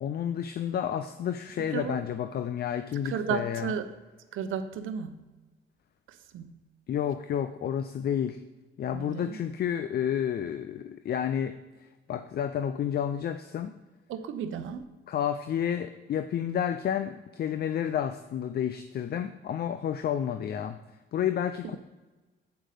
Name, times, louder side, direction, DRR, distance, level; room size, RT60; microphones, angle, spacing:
voice 1, 0.0-3.7 6.9-8.4 8.8-11.6 12.1-13.8 15.1-20.8 21.1-21.8, left 9 dB, 50° left, 10 dB, 0.5 m, -30 dB
voice 2, 3.0-3.9 4.3-5.2 6.1-6.6 8.9-9.4 14.1-14.8, right 7 dB, 80° right, 9 dB, 0.8 m, -33 dB
8.1 x 5.0 x 6.6 m, 1.2 s
cardioid pair, 90°, 20 cm